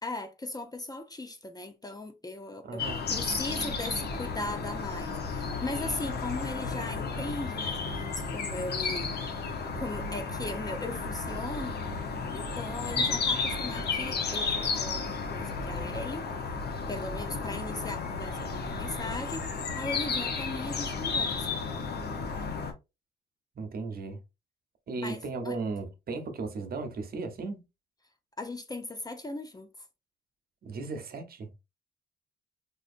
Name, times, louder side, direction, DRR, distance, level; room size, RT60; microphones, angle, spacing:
voice 1, 0.0-9.2 9.7-11.8 12.3-16.3 16.9-21.6 25.0-25.6 28.4-29.9, left 2 dB, 20° left, 0.5 m, -38 dB
voice 2, 2.6-3.0 12.9-13.2 23.6-24.2 24.9-27.6 30.6-31.5, right 3 dB, 50° right, 0.9 m, -36 dB
sound 1, 2.8-22.7, left 4 dB, 55° left, 0.9 m, -33 dB
3.7 x 2.6 x 2.5 m
cardioid pair, 90°, 20 cm